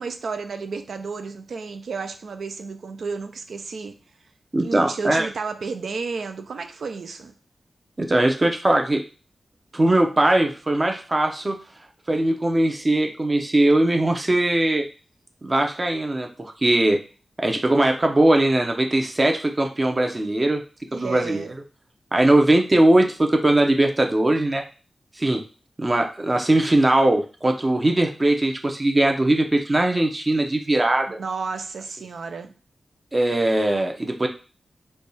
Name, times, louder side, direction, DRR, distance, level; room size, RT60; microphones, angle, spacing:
voice 1, 0.0-4.0 4.6-7.3 20.9-21.5 31.1-32.5, right 4 dB, 85° right, 0.4 m, -32 dB
voice 2, 4.5-5.3 8.0-9.0 9.7-11.6 12.1-14.9 15.4-17.0 17.4-20.6 21.0-21.4 22.1-24.6 25.2-25.4 25.8-31.2 33.1-34.3, right 1 dB, 30° right, 0.6 m, -20 dB
3.3 x 2.3 x 4.0 m
wide cardioid pair, 100°, 0 cm